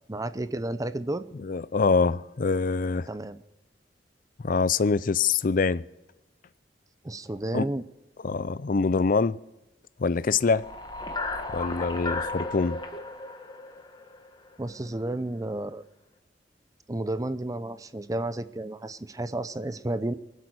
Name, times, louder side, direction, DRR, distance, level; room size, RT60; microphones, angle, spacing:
voice 1, 0.1-1.3 3.1-3.4 7.0-7.9 14.6-15.8 16.9-20.1, right 1 dB, 20° right, 0.6 m, -32 dB
voice 2, 1.4-3.1 4.4-5.8 7.5-7.7 8.2-9.4 10.0-10.7 11.5-12.8, left 4 dB, 50° left, 0.5 m, -24 dB
distress signal, 10.4-14.7, left 3 dB, 25° left, 1.4 m, -34 dB
23.5 x 8.3 x 6.4 m
head